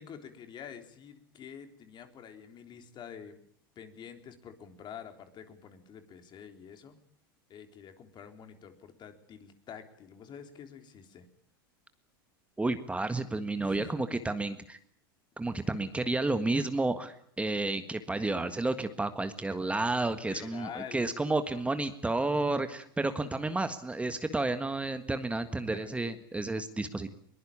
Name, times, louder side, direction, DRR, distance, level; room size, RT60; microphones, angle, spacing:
voice 1, 0.0-3.4 3.8-7.0 7.5-11.3 13.6-14.0 20.1-21.1 25.7-26.1, left 7 dB, 40° left, 7 dB, 3.7 m, -47 dB
voice 2, 12.6-14.8 15.4-27.1, right 2 dB, 10° right, 9 dB, 1.7 m, -31 dB
22.0 x 21.0 x 8.7 m, 0.63 s
hypercardioid pair, 95°, 12 cm